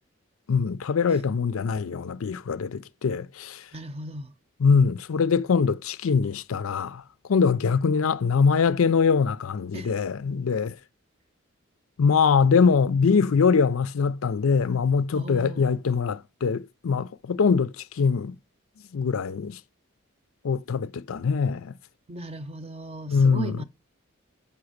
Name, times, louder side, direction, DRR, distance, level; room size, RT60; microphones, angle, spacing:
voice 1, 0.5-3.7 4.6-7.0 7.3-10.8 12.0-18.4 18.9-19.6 20.4-21.7 23.1-23.6, left 5 dB, 90° left, 0.5 m, -23 dB
voice 2, 3.7-4.3 9.7-9.9 15.1-15.7 22.1-23.6, right 2 dB, 30° right, 0.6 m, -37 dB
5.8 x 5.6 x 6.4 m
head